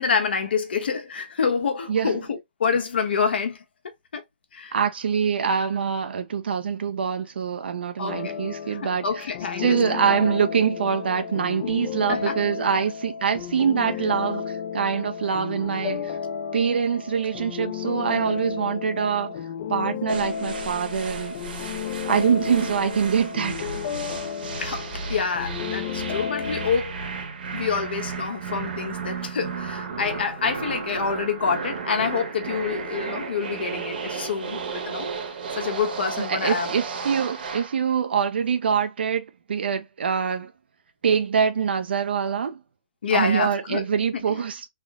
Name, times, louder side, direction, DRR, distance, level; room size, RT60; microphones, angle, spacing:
voice 1, 0.0-3.6 4.1-4.2 4.5-4.7 8.0-8.4 8.7-10.0 11.6-11.8 12.1-12.4 24.6-27.0 27.5-35.1 35.5-36.7 43.0-43.9 44.1-44.4, left 6 dB, 80° left, 1.0 m, -27 dB
voice 2, 4.7-9.0 9.6-16.2 16.5-19.3 19.7-21.4 21.6-21.7 22.1-23.7 36.2-40.5 41.0-42.6 43.1-44.6, right 7 dB, 85° right, 0.5 m, -24 dB
sound 1, 8.1-26.7, left 8 dB, 35° left, 0.3 m, -33 dB
sound 2, 20.1-37.8, right 5 dB, 65° right, 1.1 m, -34 dB
3.5 x 2.0 x 3.6 m
hypercardioid pair, 160°, 6 cm